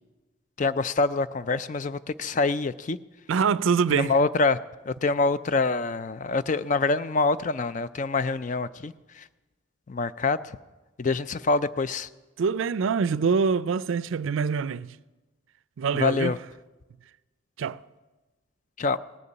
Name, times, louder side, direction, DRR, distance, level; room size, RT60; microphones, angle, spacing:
voice 1, 0.6-3.0 3.9-4.6 4.9-9.3 9.9-10.4 11.0-12.1 15.9-16.4 18.8-19.0, left 3 dB, 35° left, 0.4 m, -25 dB
voice 2, 3.3-4.1 12.4-15.0 15.8-16.4 17.6-17.8, right 5 dB, 75° right, 0.4 m, -25 dB
18.0 x 6.8 x 8.6 m
head